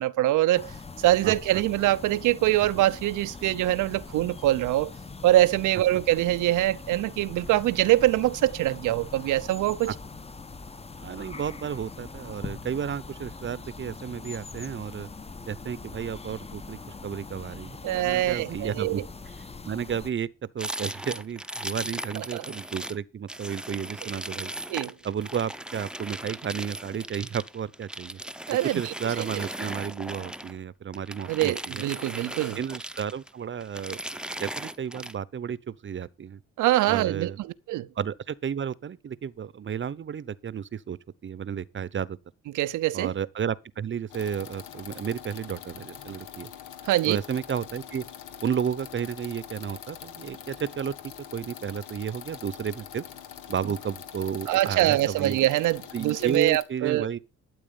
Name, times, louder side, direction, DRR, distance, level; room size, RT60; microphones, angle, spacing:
voice 1, 0.0-4.9 5.2-9.9 17.8-19.0 22.2-22.4 24.0-24.1 24.7-24.9 28.5-29.5 31.3-32.6 36.6-37.9 42.5-43.1 46.8-47.2 54.5-57.1, right 15 dB, 85° right, 0.8 m, -24 dB
sound 1, 0.5-20.1, left 4 dB, 20° left, 1.0 m, -42 dB
voice 2, 11.0-15.1 15.5-19.0 19.6-20.3 20.5-24.5 25.0-28.2 28.5-31.8 32.6-34.0 34.4-36.4 36.9-37.4 38.0-42.2 42.9-46.5 47.0-48.0 48.4-50.9 51.3-53.0 53.5-55.4 55.9-57.2, right 8 dB, 40° right, 0.9 m, -32 dB
sound 2, 20.6-23.0 23.3-30.6 30.9-33.3 33.6-35.1, right 1 dB, 5° right, 0.8 m, -37 dB
sound 3, 44.1-56.6, left 9 dB, 85° left, 1.9 m, -44 dB
12.5 x 8.6 x 5.4 m
cardioid pair, 90°, 30 cm